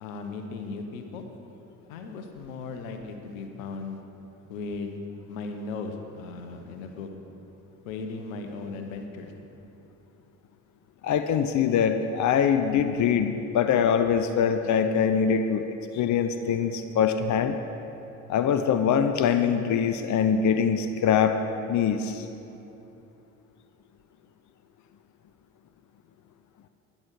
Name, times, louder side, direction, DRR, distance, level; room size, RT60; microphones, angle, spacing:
voice 1, 0.0-1.2 1.9-4.0 4.5-5.0 5.3-7.1 7.8-9.3, left 4 dB, 75° left, 6 dB, 1.1 m, -37 dB
voice 2, 11.0-17.6 18.3-21.4 21.7-22.3, left 7 dB, 45° left, 8 dB, 0.8 m, -23 dB
14.0 x 10.0 x 4.8 m, 2.9 s
hypercardioid pair, 55°, 41 cm